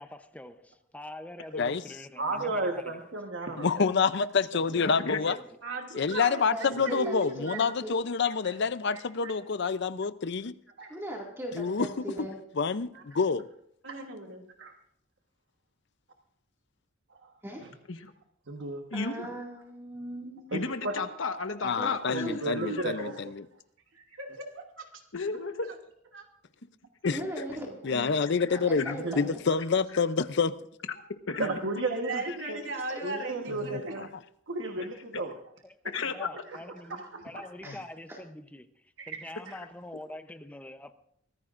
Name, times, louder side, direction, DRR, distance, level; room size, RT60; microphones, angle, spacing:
voice 1, 0.0-3.0 5.0-5.5 35.6-35.8 36.0-40.9, left 1 dB, 5° left, 0.7 m, -45 dB
voice 2, 2.2-3.9 4.7-4.8 8.2-8.6 8.9-9.3 10.8-11.0 12.9-13.0 13.9-14.0 14.6-14.7 17.1-17.3 17.6-17.7 18.5-18.8 20.5-21.0 22.1-23.3 29.0-29.2 31.4-32.6 33.0-34.1 34.5-35.3 36.5-36.6 36.9-37.4 39.0-39.5, right 2 dB, 65° right, 1.3 m, -34 dB
voice 3, 3.6-5.4 5.9-10.5 11.5-12.1 12.6-13.5 21.6-23.4 27.0-27.2 27.8-30.5 33.5-33.6, left 5 dB, 60° left, 0.6 m, -27 dB
voice 4, 4.8-5.4 17.9-18.1 18.9-19.2 20.5-22.4 22.8-23.1 25.1-25.7 27.0-27.1 28.8-28.9 31.3-31.6 35.1-35.2 35.9-36.3, left 4 dB, 80° left, 1.2 m, -33 dB
voice 5, 5.6-7.7 13.8-14.4 23.9-24.9 25.6-25.7 26.1-26.3 31.9-34.0, right 3 dB, 80° right, 2.4 m, -37 dB
voice 6, 6.5-7.9 10.9-12.4 17.4-17.6 18.9-20.5 21.8-21.9 22.2-22.4 27.1-28.2 28.5-29.2 32.9-33.0 37.6-37.8 38.1-38.2, right 1 dB, 10° right, 2.2 m, -39 dB
24.0 x 15.0 x 2.6 m
head